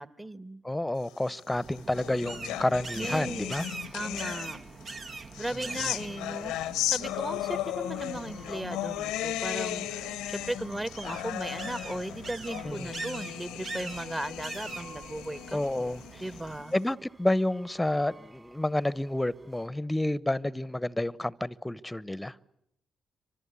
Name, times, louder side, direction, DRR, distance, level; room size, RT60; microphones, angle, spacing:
voice 1, 0.0-0.6 2.9-3.5 3.9-4.6 5.4-15.9 16.2-16.7, right 1 dB, 20° right, 1.6 m, -37 dB
voice 2, 0.6-3.6 12.6-12.9 15.5-16.2 16.7-22.4, left 1 dB, 15° left, 1.0 m, -30 dB
sound 1, 1.4-4.8 5.3-16.8, left 13 dB, 85° left, 1.0 m, -36 dB
sound 2, 1.5-16.6, right 4 dB, 55° right, 1.4 m, -43 dB
sound 3, 1.9-19.7, right 3 dB, 35° right, 4.8 m, -57 dB
27.5 x 25.5 x 8.4 m
hypercardioid pair, 45°, 0 cm